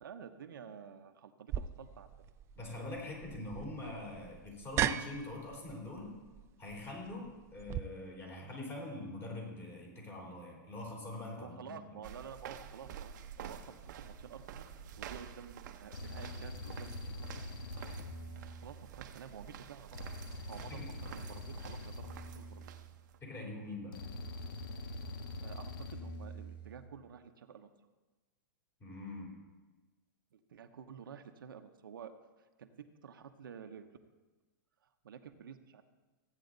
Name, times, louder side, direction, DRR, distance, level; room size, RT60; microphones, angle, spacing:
voice 1, 0.0-2.1 11.4-17.4 18.6-20.0 20.5-22.7 25.4-27.7 30.3-32.1 32.6-32.7 33.0-33.9 35.0-35.8, right 7 dB, 85° right, 7 dB, 0.9 m, -50 dB
sound 1, 1.5-7.8, right 11 dB, 25° right, 0.3 m, -39 dB
voice 2, 2.6-6.1 6.6-11.7 13.4-13.5 20.7-20.9 23.2-24.0 28.8-29.3, left 2 dB, 20° left, -1 dB, 3.8 m, -44 dB
sound 2, 12.0-23.2, right 8 dB, 60° right, 0.8 m, -50 dB
sound 3, 14.9-15.2 15.9-19.2 19.9-23.2 23.9-26.9, left 1 dB, 80° left, 1.5 m, -44 dB
15.0 x 9.1 x 4.0 m, 1.2 s
hypercardioid pair, 135°, 11 cm